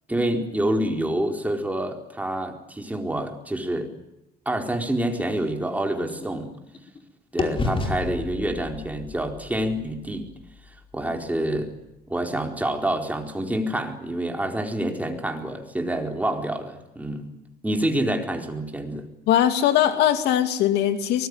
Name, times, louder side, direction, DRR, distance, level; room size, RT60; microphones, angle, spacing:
voice 1, 0.1-3.9 4.5-6.5 7.3-10.3 10.9-11.7 12.1-17.2 17.6-19.1, right 1 dB, 10° right, 4 dB, 4.4 m, -27 dB
sound 1, 4.7-7.0 7.4-11.4, left 3 dB, 30° left, 4.9 m, -33 dB
voice 2, 19.3-21.3, left 10 dB, 85° left, 9 dB, 2.6 m, -20 dB
23.5 x 20.5 x 9.8 m, 0.92 s
cardioid pair, 110°, 17 cm